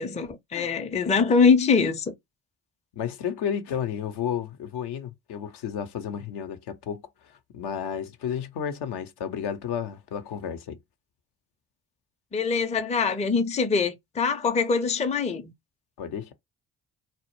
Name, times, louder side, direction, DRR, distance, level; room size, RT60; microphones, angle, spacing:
voice 1, 0.0-2.1 12.3-15.5, left 5 dB, 15° left, 0.5 m, -23 dB
voice 2, 3.0-10.8 16.0-16.3, left 8 dB, 60° left, 0.6 m, -32 dB
2.0 x 2.0 x 3.0 m
hypercardioid pair, 40°, 45 cm